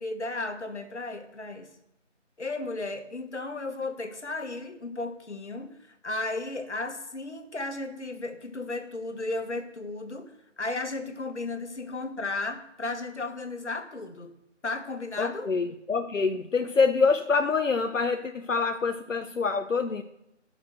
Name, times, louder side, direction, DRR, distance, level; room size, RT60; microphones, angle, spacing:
voice 1, 0.0-1.7 2.4-14.3 14.6-15.5, left 2 dB, 65° left, 7 dB, 1.5 m, -34 dB
voice 2, 15.2-20.0, left 4 dB, 85° left, 7 dB, 0.8 m, -26 dB
9.1 x 5.8 x 6.3 m, 0.83 s
figure-of-eight pair, 160°, 37 cm